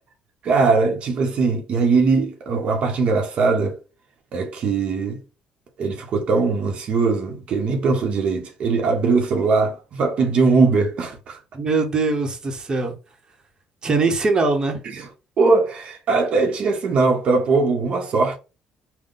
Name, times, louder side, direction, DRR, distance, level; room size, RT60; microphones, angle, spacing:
voice 1, 0.4-3.8 4.3-5.2 5.8-11.4 14.8-15.1 15.4-18.4, right 4 dB, 60° right, 0.9 m, -20 dB
voice 2, 11.5-13.0 13.8-14.8, right 3 dB, 35° right, 1.0 m, -21 dB
3.9 x 2.2 x 3.8 m
supercardioid pair, 80°, 2 cm